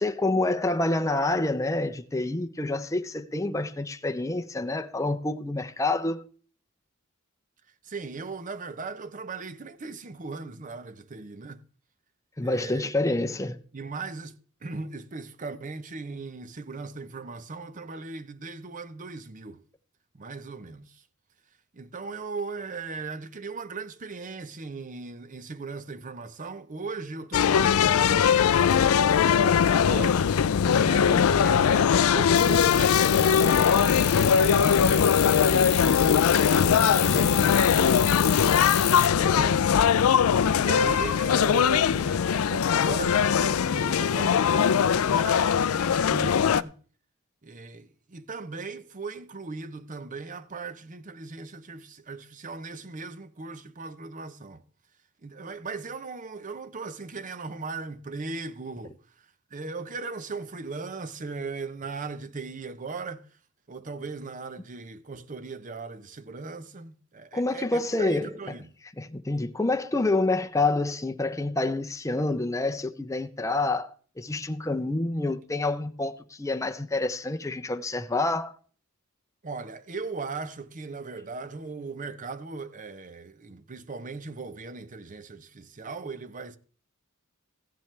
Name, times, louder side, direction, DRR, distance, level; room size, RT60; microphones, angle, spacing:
voice 1, 0.0-6.2 12.4-13.6 67.3-68.4 69.0-78.5, left 2 dB, 15° left, 0.6 m, -27 dB
voice 2, 7.8-11.6 12.4-12.9 13.7-14.4 14.6-19.6 20.1-21.0 21.7-28.5 29.1-30.3 30.6-38.3 39.1-39.7 40.5-46.7 47.4-54.6 55.2-63.3 63.7-68.7 79.4-86.6, right 4 dB, 35° right, 0.7 m, -38 dB
sound 1, 27.3-46.6, left 7 dB, 75° left, 0.4 m, -21 dB
sound 2, 32.3-39.1, left 12 dB, 50° left, 1.0 m, -31 dB
15.0 x 10.5 x 3.3 m
head